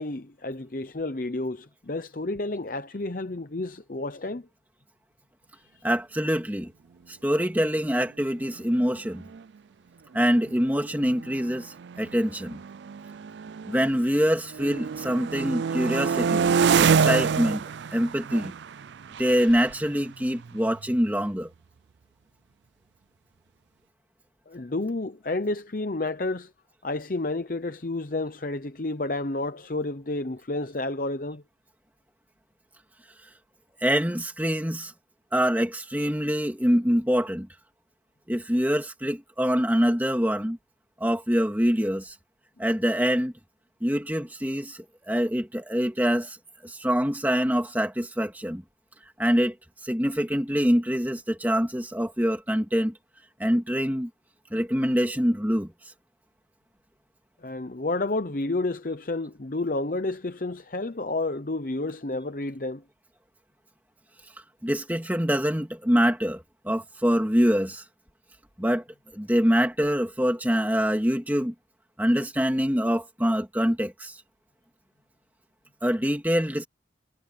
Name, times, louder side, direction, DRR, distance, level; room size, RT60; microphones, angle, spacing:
voice 1, 0.0-4.5 5.7-5.8 24.5-26.5 26.8-31.4 57.4-62.8, left 2 dB, 45° left, 0.8 m, -30 dB
voice 2, 5.8-6.7 7.1-9.2 10.1-12.6 13.7-17.6 17.9-18.5 19.2-21.5 33.8-34.9 35.3-37.5 38.3-40.6 41.0-42.2 42.6-43.3 43.8-46.4 46.6-48.6 49.2-49.5 49.8-52.9 53.4-54.1 54.5-55.9 64.6-67.8 68.6-68.8 69.1-71.5 72.0-74.2 75.8-76.7, equal, 10° right, 2.5 m, -25 dB
sound 1, 8.7-8.8 9.1-9.4 10.2-14.1 14.4-21.1, right 6 dB, 70° right, 0.4 m, -27 dB
head